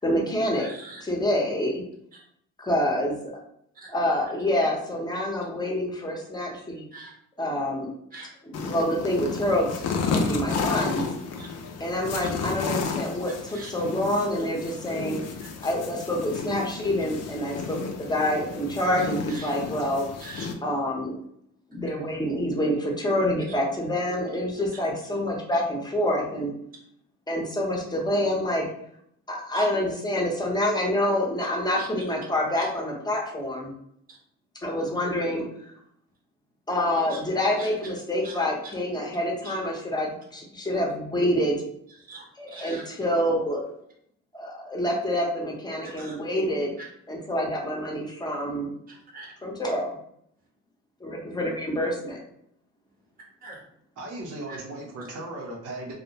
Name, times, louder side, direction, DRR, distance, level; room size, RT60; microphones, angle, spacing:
voice 1, 0.0-0.7 1.0-1.8 2.6-3.2 3.9-6.9 7.4-7.9 8.5-11.1 11.8-15.2 15.6-20.1 20.6-21.2 21.7-26.5 27.3-28.7 29.3-33.7 34.6-35.5 36.7-41.6 42.4-43.6 44.3-46.7 47.1-48.7 49.4-49.9 51.0-52.2, left 1 dB, 15° left, -1 dB, 0.7 m, -27 dB
voice 2, 0.5-1.0 3.7-3.9 6.9-7.1 8.1-8.3 11.4-11.5 12.2-12.3 13.5-13.7 15.4-15.5 19.3-19.5 20.2-20.5 29.5-29.6 31.8-31.9 32.6-32.7 37.1-37.2 37.6-37.7 38.2-38.4 39.4-39.5 42.1-42.8 45.8-46.2 48.9-49.3 53.4-53.6 54.5-54.6, right 3 dB, 30° right, -2 dB, 0.7 m, -43 dB
sound 1, 8.5-20.5, left 5 dB, 60° left, 0.5 m, -32 dB
voice 3, 54.0-56.0, right 2 dB, 80° right, -3 dB, 0.8 m, -37 dB
2.3 x 2.1 x 2.7 m, 0.70 s
cardioid pair, 90°, 30 cm